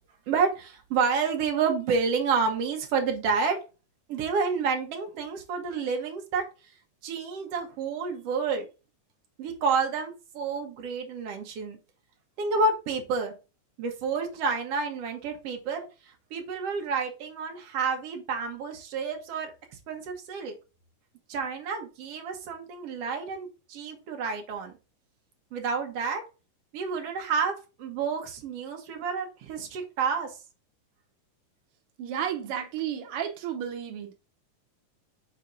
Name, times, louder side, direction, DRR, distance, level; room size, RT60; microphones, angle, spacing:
voice 1, 0.3-3.6 4.1-6.4 7.0-8.7 9.4-11.8 12.4-13.3 13.8-15.9 16.3-19.5 19.9-20.5 21.3-24.7 25.5-26.2 26.7-30.4, right 5 dB, 60° right, 1.7 m, -29 dB
voice 2, 32.0-34.2, right 9 dB, 85° right, 1.2 m, -32 dB
5.7 x 4.4 x 3.7 m
omnidirectional pair, 3.8 m